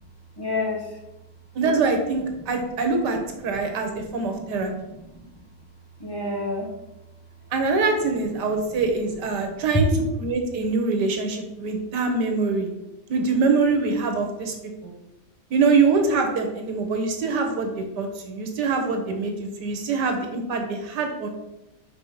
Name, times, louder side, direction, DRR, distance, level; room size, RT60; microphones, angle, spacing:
voice 1, 0.4-1.0 2.5-2.6 3.8-3.9 4.2-5.3 6.0-6.7 9.4-9.6, left 2 dB, 15° left, -2 dB, 1.1 m, -31 dB
voice 2, 1.6-3.2 3.4-4.7 7.5-9.9 10.2-12.7 13.1-14.5 14.8-14.9 15.5-21.3, right 4 dB, 90° right, 4 dB, 1.8 m, -24 dB
5.5 x 4.5 x 5.7 m, 0.93 s
omnidirectional pair, 1.8 m